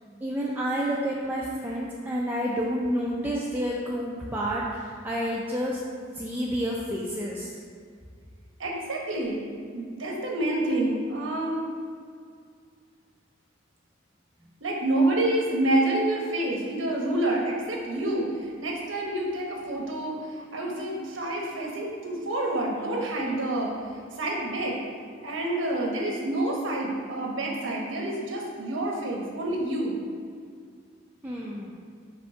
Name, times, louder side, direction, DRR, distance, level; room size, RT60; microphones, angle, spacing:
voice 1, 0.2-5.8 6.1-7.5 31.2-31.9, equal, 10° right, -5 dB, 0.5 m, -29 dB
voice 2, 8.6-11.6 14.6-23.7 24.1-24.8 25.2-30.0, right 1 dB, 85° right, -2 dB, 1.1 m, -28 dB
5.3 x 3.4 x 5.7 m, 2.1 s
head